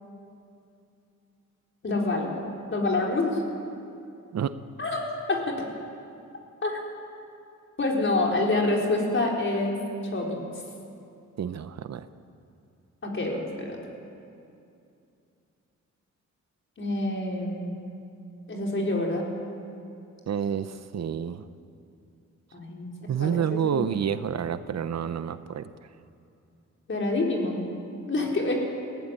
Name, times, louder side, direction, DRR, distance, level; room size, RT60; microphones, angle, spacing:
voice 1, 1.8-3.4 4.8-5.6 6.6-6.8 7.8-9.8 10.1-10.4 13.0-13.8 16.8-17.7 18.5-19.3 22.5-22.9 23.2-23.8 26.9-27.7 28.1-28.5, left 2 dB, 40° left, -1 dB, 4.5 m, -27 dB
voice 2, 11.4-12.1 20.3-21.5 23.1-25.7, right 8 dB, 60° right, 12 dB, 0.8 m, -29 dB
23.0 x 15.5 x 9.9 m, 2.6 s
wide cardioid pair, 115°, 30 cm